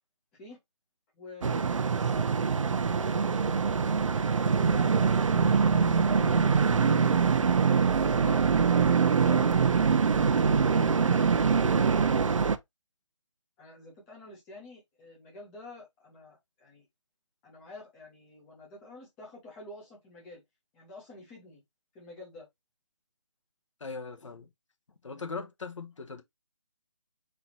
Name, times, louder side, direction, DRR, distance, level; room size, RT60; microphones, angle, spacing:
voice 1, 1.1-7.5 9.9-12.6 13.6-16.9 17.4-20.4 20.7-21.6 21.9-22.5 25.1-25.4, left 2 dB, 5° left, 0.5 m, -49 dB
sound 1, 1.4-12.6, right 5 dB, 80° right, 0.6 m, -24 dB
voice 2, 9.2-9.6 23.8-24.5 25.0-26.2, left 4 dB, 75° left, 1.1 m, -40 dB
4.3 x 2.7 x 4.2 m
hypercardioid pair, 170°, 16 cm